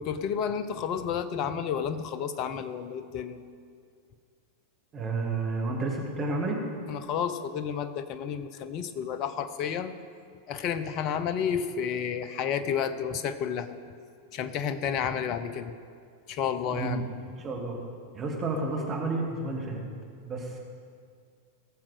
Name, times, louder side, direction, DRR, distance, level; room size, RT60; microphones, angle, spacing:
voice 1, 0.0-3.4 6.9-10.0 10.5-13.8 14.3-15.8 16.3-17.1, left 7 dB, 40° left, 11 dB, 0.7 m, -31 dB
voice 2, 4.9-6.6 16.7-17.0 17.4-17.8 18.1-19.8 20.2-20.6, right 3 dB, 25° right, 0 dB, 2.2 m, -31 dB
18.0 x 7.4 x 5.0 m, 2.2 s
figure-of-eight pair, 90°, 0 cm